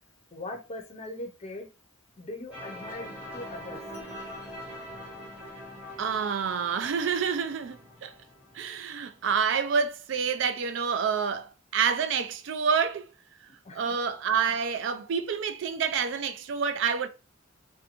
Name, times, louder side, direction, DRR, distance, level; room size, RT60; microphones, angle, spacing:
voice 1, 0.3-1.7 2.2-3.8 13.6-14.0, left 2 dB, 30° left, 0.5 m, -40 dB
sound 1, 2.5-9.3, left 1 dB, 5° right, 0.9 m, -43 dB
voice 2, 6.0-8.1 8.5-13.1 13.7-17.1, right 6 dB, 65° right, 0.3 m, -28 dB
2.6 x 2.2 x 2.8 m
head